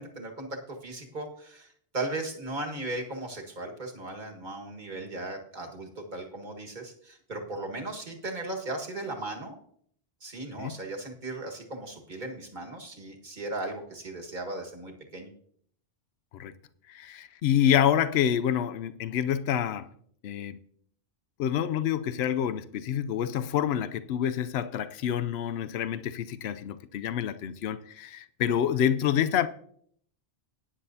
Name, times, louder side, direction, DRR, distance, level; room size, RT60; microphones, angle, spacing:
voice 1, 0.0-9.6 10.2-15.3, right 2 dB, 50° right, 1.8 m, -37 dB
voice 2, 16.9-19.9 20.2-20.6 21.4-29.5, left 9 dB, 80° left, 0.8 m, -27 dB
17.0 x 9.9 x 2.7 m
omnidirectional pair, 1.1 m